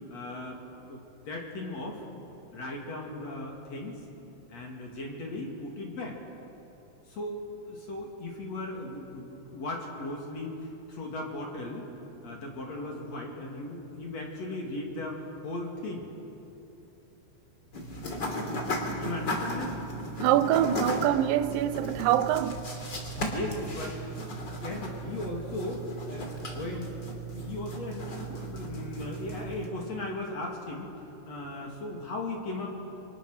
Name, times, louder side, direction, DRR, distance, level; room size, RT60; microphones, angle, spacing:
voice 1, 0.1-0.6 0.9-1.0 1.3-2.1 2.5-4.0 4.5-6.2 7.1-7.4 7.7-10.5 10.9-11.9 12.2-16.1 18.6-19.8 23.0-32.7, left 2 dB, 45° left, 3.4 m, -37 dB
sound 1, 17.7-29.7, equal, 30° left, 3.1 m, -36 dB
voice 2, 20.2-22.6, right 12 dB, 75° right, 2.1 m, -25 dB
29.0 x 24.0 x 6.5 m
omnidirectional pair, 4.8 m